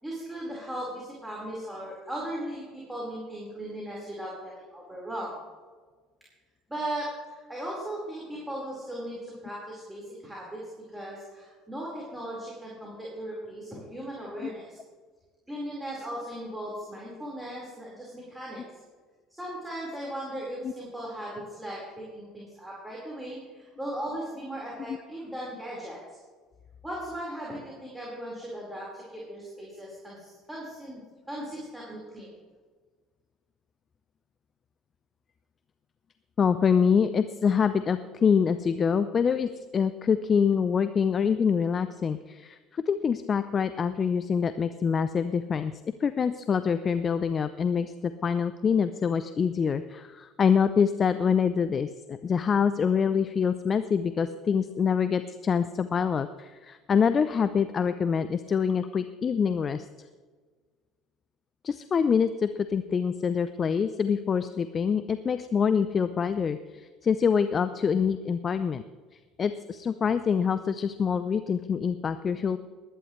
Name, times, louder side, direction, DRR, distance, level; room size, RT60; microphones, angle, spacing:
voice 1, 0.0-2.6 2.9-5.3 6.7-10.6 10.9-14.8 15.5-18.6 19.3-26.2 26.8-31.0 31.3-32.3, right 1 dB, 5° right, -5 dB, 4.5 m, -37 dB
voice 2, 36.4-45.7 46.0-59.9 61.6-68.8 69.4-72.6, left 6 dB, 35° left, 12 dB, 0.5 m, -25 dB
20.0 x 11.0 x 3.2 m, 1.5 s
hypercardioid pair, 70°, 0 cm